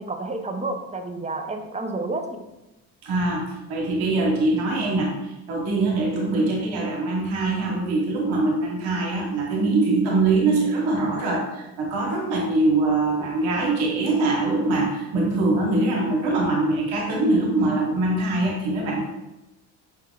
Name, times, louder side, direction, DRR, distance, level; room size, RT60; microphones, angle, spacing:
voice 1, 0.0-2.4, right 2 dB, 15° right, 4 dB, 0.6 m, -30 dB
voice 2, 3.0-19.0, right 2 dB, 70° right, -2 dB, 1.2 m, -23 dB
5.4 x 3.5 x 2.4 m, 0.97 s
hypercardioid pair, 50°, 49 cm